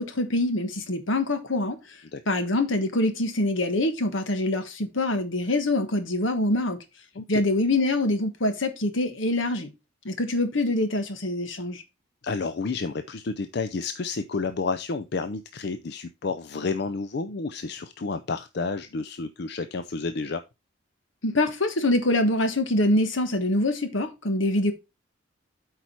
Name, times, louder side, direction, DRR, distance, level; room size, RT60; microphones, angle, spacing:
voice 1, 0.0-1.8 2.3-6.8 7.3-9.7 10.0-11.8 21.2-24.7, left 1 dB, 75° left, 1.3 m, -25 dB
voice 2, 12.2-20.4, left 4 dB, 55° left, 0.5 m, -30 dB
8.3 x 4.8 x 4.3 m
head